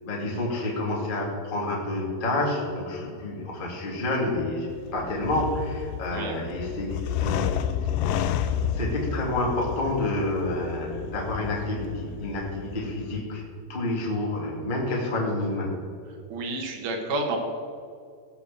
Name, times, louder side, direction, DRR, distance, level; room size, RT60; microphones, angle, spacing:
voice 1, 0.0-7.5 8.7-13.4 13.7-15.7, left 2 dB, 20° left, -2 dB, 1.6 m, -29 dB
sound 1, 4.7-13.2, left 9 dB, 80° left, 1.9 m, -31 dB
voice 2, 6.1-6.4 16.3-17.4, right 2 dB, 60° right, 2 dB, 2.8 m, -30 dB
17.0 x 5.9 x 7.4 m, 2.3 s
omnidirectional pair, 4.3 m